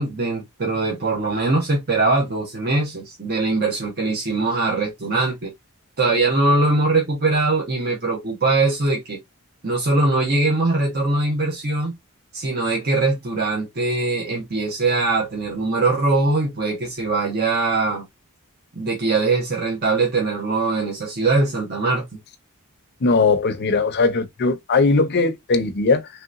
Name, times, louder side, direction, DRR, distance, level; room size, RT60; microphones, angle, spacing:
voice 1, 0.0-5.5 6.0-9.2 9.6-11.9 12.3-18.0 18.7-22.1, right 3 dB, 45° right, 0.9 m, -21 dB
voice 2, 23.0-26.1, left 3 dB, 45° left, 0.6 m, -19 dB
3.2 x 2.8 x 2.4 m
head